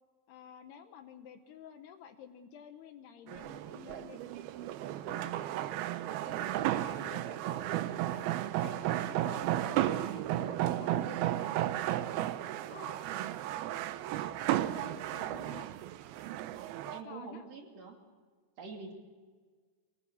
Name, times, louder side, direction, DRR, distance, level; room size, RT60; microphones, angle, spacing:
voice 1, 0.3-4.2 5.1-5.3 6.2-8.3 8.6-11.5 12.7-13.0 14.7-15.7 17.0-17.4, left 8 dB, 75° left, 7 dB, 2.7 m, -51 dB
sound 1, 3.3-17.0, right 13 dB, 85° right, 2.2 m, -34 dB
voice 2, 6.7-7.2 16.9-18.0 18.6-18.9, right 4 dB, 40° right, 2 dB, 3.3 m, -46 dB
24.0 x 19.5 x 7.1 m, 1.5 s
omnidirectional pair, 5.4 m